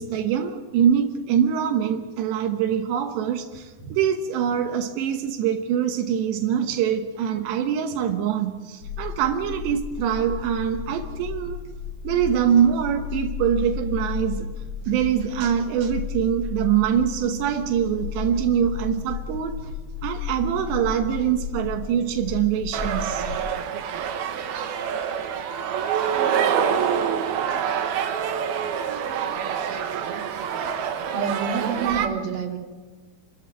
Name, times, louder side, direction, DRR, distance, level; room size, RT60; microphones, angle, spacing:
voice 1, 0.0-11.6 12.0-14.5 14.9-19.6 20.0-23.3, right 8 dB, 85° right, 5 dB, 3.3 m, -24 dB
sound 1, 8.8-23.4, left 7 dB, 75° left, 5.0 m, -34 dB
sound 2, 22.7-32.1, right 8 dB, 70° right, 3.1 m, -26 dB
voice 2, 31.1-32.6, right 6 dB, 55° right, 0 dB, 3.9 m, -28 dB
28.0 x 13.5 x 9.4 m, 1.4 s
omnidirectional pair, 4.8 m